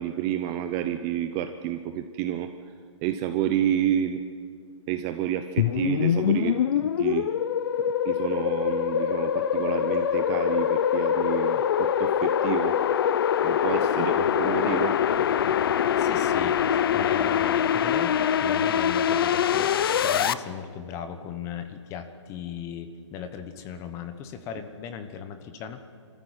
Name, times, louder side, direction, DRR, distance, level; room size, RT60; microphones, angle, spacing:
voice 1, 0.0-2.5 3.0-4.2 4.9-7.3 8.0-12.8 13.4-15.0, right 11 dB, 20° right, 8 dB, 0.6 m, -29 dB
sound 1, 5.6-20.3, left 9 dB, 45° left, 0.8 m, -24 dB
voice 2, 16.0-25.8, left 8 dB, 20° left, 9 dB, 1.1 m, -37 dB
26.0 x 14.5 x 9.8 m, 2.1 s
hypercardioid pair, 160°, 16 cm